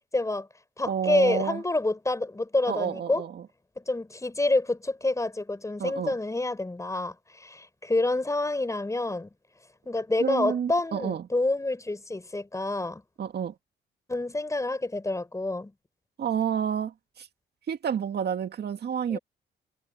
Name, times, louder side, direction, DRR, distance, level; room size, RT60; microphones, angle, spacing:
voice 1, 0.1-0.5 0.8-3.2 3.8-9.3 9.9-13.0 14.1-15.7 19.1-19.2, left 2 dB, 15° left, 5.2 m, -28 dB
voice 2, 0.8-1.6 2.7-3.5 5.8-6.1 10.2-11.3 13.2-13.5 16.2-17.3 17.7-19.2, right 8 dB, 55° right, 2.1 m, -29 dB
cardioid pair, 90°, 20 cm